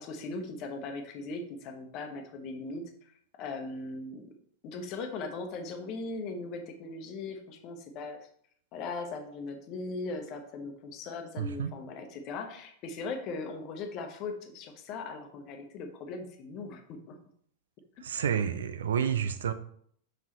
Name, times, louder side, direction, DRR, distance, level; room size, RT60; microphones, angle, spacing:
voice 1, 0.0-3.1 3.4-4.3 4.6-8.3 8.7-17.2, left 3 dB, 40° left, 5 dB, 1.1 m, -39 dB
voice 2, 11.4-11.7 18.0-19.5, right 8 dB, 65° right, 11 dB, 0.5 m, -29 dB
5.6 x 5.6 x 3.1 m, 0.63 s
figure-of-eight pair, 90°, 0 cm